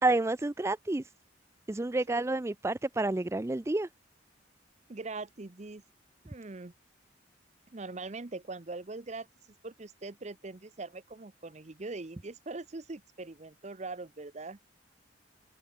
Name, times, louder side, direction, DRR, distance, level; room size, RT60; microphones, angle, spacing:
voice 1, 0.0-1.1 1.7-3.9, right 2 dB, 15° right, 0.4 m, -29 dB
voice 2, 4.9-5.8 6.2-6.7 7.7-9.3 9.6-14.6, right 3 dB, 35° right, 0.7 m, -42 dB
open air
head